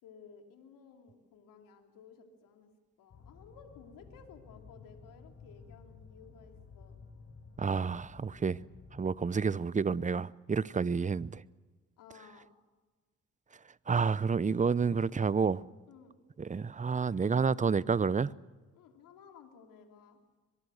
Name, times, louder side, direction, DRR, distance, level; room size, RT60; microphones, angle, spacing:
voice 1, 0.0-2.7 3.0-7.0 12.0-12.5 15.9-16.1 18.7-20.2, left 6 dB, 75° left, 3.2 m, -56 dB
sound 1, 3.1-9.4, left 4 dB, 50° left, 6.0 m, -54 dB
voice 2, 7.6-8.6 8.9-11.4 13.9-15.6 16.4-18.3, right 5 dB, 25° right, 0.7 m, -29 dB
23.0 x 22.5 x 6.5 m
hypercardioid pair, 55°, 33 cm